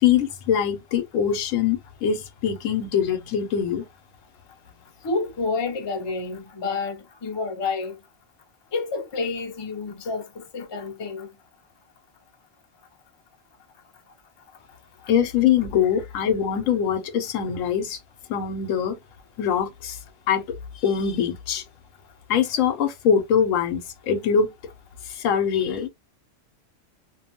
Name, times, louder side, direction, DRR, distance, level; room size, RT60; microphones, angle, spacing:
voice 1, 0.0-3.8 15.1-18.0 18.3-19.0 19.4-20.0 20.3-20.4 20.8-21.6 22.3-24.5 25.1-25.9, left 8 dB, 90° left, 1.0 m, -23 dB
voice 2, 5.0-7.0 7.2-8.0 8.7-11.3, left 4 dB, 35° left, 0.4 m, -29 dB
2.5 x 2.2 x 2.8 m
omnidirectional pair, 1.3 m